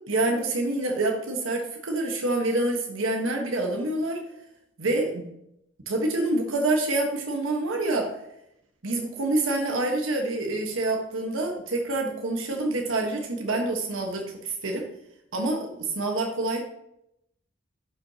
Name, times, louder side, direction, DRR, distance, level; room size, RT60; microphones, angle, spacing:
voice 1, 0.1-4.2 4.8-5.2 5.9-8.2 8.8-14.9 15.3-16.6, right 2 dB, 80° right, 2 dB, 1.2 m, -27 dB
11.5 x 6.2 x 2.8 m, 0.79 s
head